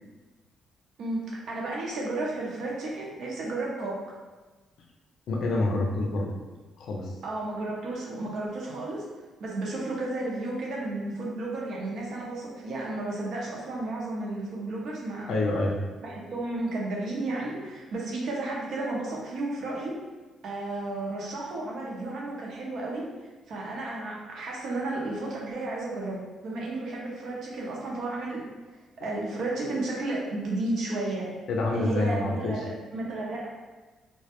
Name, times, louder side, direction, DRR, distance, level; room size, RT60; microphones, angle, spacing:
voice 1, 1.0-4.0 7.2-9.1 9.4-15.3 16.0-19.9 20.4-23.0 23.5-28.5 29.0-31.3 31.7-33.5, right 2 dB, 70° right, -3 dB, 0.6 m, -33 dB
voice 2, 5.3-6.3 6.8-7.1 15.3-15.8 31.5-32.6, left 2 dB, 70° left, 0 dB, 0.4 m, -27 dB
2.2 x 2.1 x 2.9 m, 1.2 s
cardioid pair, 90°, 0 cm